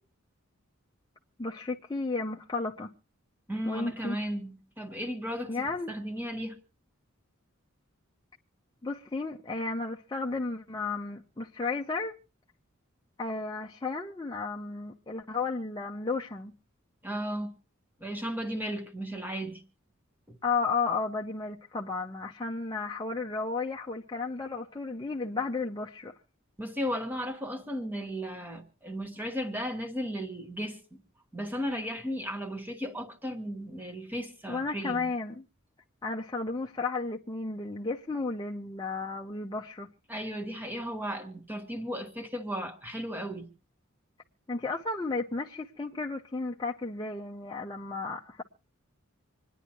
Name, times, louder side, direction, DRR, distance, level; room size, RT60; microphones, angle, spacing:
voice 1, 1.4-2.9 3.7-4.2 5.5-5.9 8.8-12.2 13.2-16.5 20.4-26.1 34.5-35.4 36.0-39.9 44.5-48.4, left 3 dB, 20° left, 0.6 m, -33 dB
voice 2, 3.5-6.6 17.0-17.5 18.0-19.6 20.3-20.4 26.6-31.0 31.3-35.1 40.1-43.5, equal, 10° right, 1.3 m, -35 dB
26.5 x 10.0 x 2.9 m
head